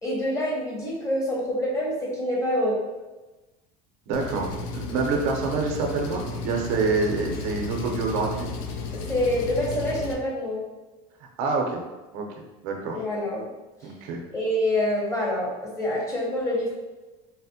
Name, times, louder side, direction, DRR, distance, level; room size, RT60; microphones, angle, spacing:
voice 1, 0.0-2.8 8.9-10.6 12.9-13.5 13.8-13.9 14.3-16.8, left 1 dB, 15° left, -4 dB, 0.9 m, -26 dB
Engine, 4.1-10.1, left 3 dB, 75° left, 0.5 m, -33 dB
voice 2, 4.1-8.5 11.4-11.8 12.1-12.3 12.6-13.0 13.8-14.2, right 4 dB, 70° right, 1 dB, 0.6 m, -27 dB
4.0 x 2.1 x 2.7 m, 1.1 s
supercardioid pair, 130°, 19 cm